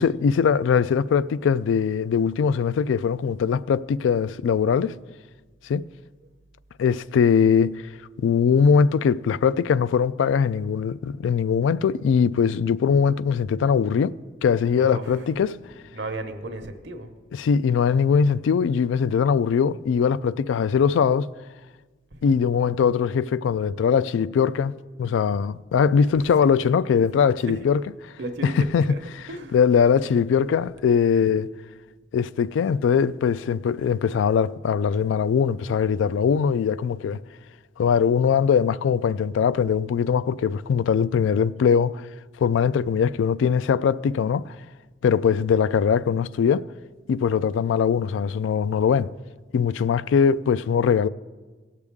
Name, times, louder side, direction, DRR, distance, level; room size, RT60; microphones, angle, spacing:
voice 1, 0.0-5.0 5.6-5.8 6.8-7.8 8.2-14.1 14.4-15.6 17.3-21.3 22.2-24.7 25.0-27.8 28.4-28.9 29.5-31.5 32.1-37.2 37.8-42.0 42.4-44.5 45.0-46.6 47.1-49.1 49.5-51.1, left 6 dB, 90° left, 0.3 m, -21 dB
voice 2, 14.7-15.2 15.7-17.1 22.1-22.4 26.2-26.3 27.5-27.7 28.2-29.0 29.3-29.6, right 2 dB, 65° right, 0.9 m, -35 dB
18.0 x 6.7 x 3.6 m
head